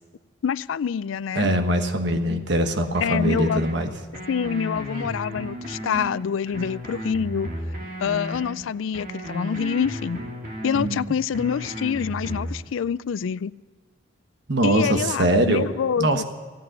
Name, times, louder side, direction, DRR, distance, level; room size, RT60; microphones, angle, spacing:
voice 1, 0.4-1.5 3.0-3.6 4.3-7.5 8.0-10.2 10.6-13.5 14.6-16.2, left 7 dB, 80° left, 20 dB, 0.4 m, -26 dB
voice 2, 1.3-3.9 10.7-11.0 14.5-15.7 16.0-16.2, right 1 dB, 60° right, 6 dB, 1.3 m, -22 dB
sound 1, 2.9-3.7 4.1-6.1 6.5-8.5 8.9-10.9 11.3-12.5, equal, 45° right, 2.6 m, -34 dB
16.0 x 8.8 x 9.9 m, 1.5 s
head